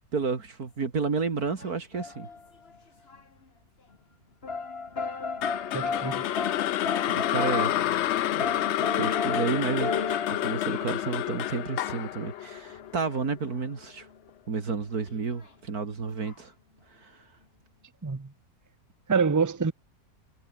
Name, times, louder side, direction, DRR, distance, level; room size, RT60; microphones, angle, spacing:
voice 1, 0.1-2.3 7.1-7.9 8.3-8.5 8.8-14.1 14.5-16.5 16.9-17.2, right 5 dB, 75° right, 2.9 m, -31 dB
sound 1, 1.4-2.8 3.1-3.2 4.4-11.9 12.2-12.5 12.7-13.2 15.0-15.2 16.2-16.3, left 4 dB, 40° left, 2.1 m, -34 dB
sound 2, 5.4-13.6, left 13 dB, 65° left, 0.7 m, -29 dB
voice 2, 5.7-6.2 18.0-18.3 19.1-19.7, right 5 dB, 20° right, 0.5 m, -26 dB
omnidirectional pair, 1.6 m